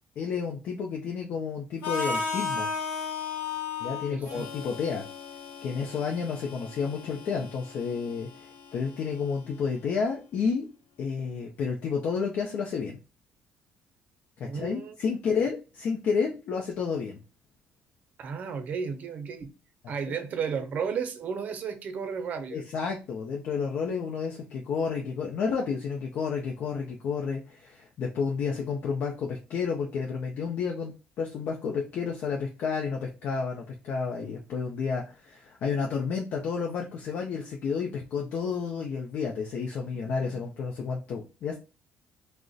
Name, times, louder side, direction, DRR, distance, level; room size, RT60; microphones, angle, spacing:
voice 1, 0.2-2.7 3.8-5.1 5.6-10.6 11.0-13.0 14.4-17.2 20.1-20.2 22.5-41.6, left 5 dB, 60° left, 0.6 m, -31 dB
Harmonica, 1.8-9.7, left 5 dB, 90° left, 0.9 m, -36 dB
voice 2, 4.1-4.5 14.5-14.9 18.2-19.5 19.9-22.6 40.1-40.4, right 6 dB, 50° right, 0.5 m, -33 dB
2.4 x 2.1 x 3.8 m
cardioid pair, 110°, 3 cm